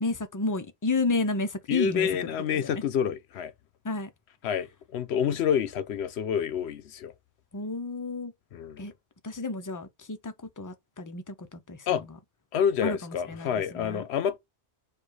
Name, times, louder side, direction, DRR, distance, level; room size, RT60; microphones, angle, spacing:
voice 1, 0.0-2.1 2.5-2.8 3.8-4.1 7.5-8.3 8.8-8.9 9.2-12.2 12.8-14.0, left 3 dB, 30° left, 0.4 m, -31 dB
voice 2, 1.7-3.5 4.4-7.1 8.5-8.9 11.9-12.0 12.5-14.4, left 8 dB, 80° left, 0.9 m, -28 dB
4.4 x 2.4 x 4.7 m
omnidirectional pair, 1.1 m